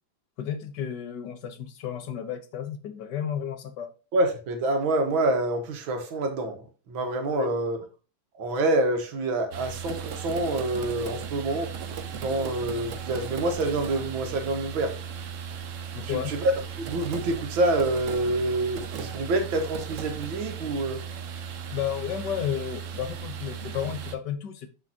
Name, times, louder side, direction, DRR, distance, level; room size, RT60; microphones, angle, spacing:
voice 1, 0.4-3.9 7.3-7.5 15.9-16.4 21.7-24.7, left 9 dB, 65° left, 1.4 m, -32 dB
voice 2, 4.1-7.8 8.4-11.7 12.1-14.9 16.0-21.0, right 2 dB, 85° right, 2.1 m, -27 dB
sound 1, 9.5-24.1, right 7 dB, 60° right, 0.8 m, -36 dB
7.1 x 6.4 x 2.8 m
omnidirectional pair, 2.1 m